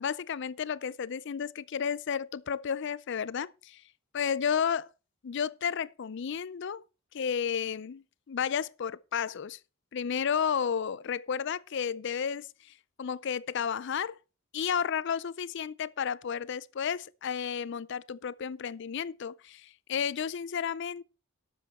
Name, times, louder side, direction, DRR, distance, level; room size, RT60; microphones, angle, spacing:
voice 1, 0.0-3.8 4.1-4.9 5.2-6.8 7.1-9.6 9.9-14.2 14.5-21.0, left 7 dB, 55° left, 0.4 m, -32 dB
12.0 x 8.1 x 4.2 m
head